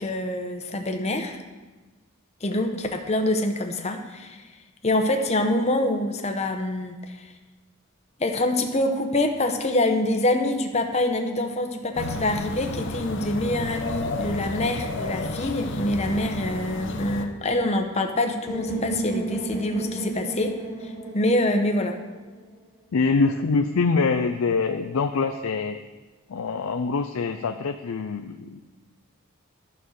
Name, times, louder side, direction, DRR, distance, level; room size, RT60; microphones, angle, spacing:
voice 1, 0.0-1.4 2.4-4.4 4.8-7.3 8.2-20.6 20.8-22.0, left 1 dB, 30° left, 5 dB, 0.9 m, -25 dB
sound 1, 12.0-17.3, left 2 dB, 55° left, 0.8 m, -32 dB
sound 2, 18.5-22.4, right 3 dB, 20° right, 4.0 m, -33 dB
voice 2, 22.9-25.8 26.3-28.6, left 4 dB, 80° left, 6 dB, 0.5 m, -24 dB
11.5 x 5.4 x 6.5 m, 1.2 s
head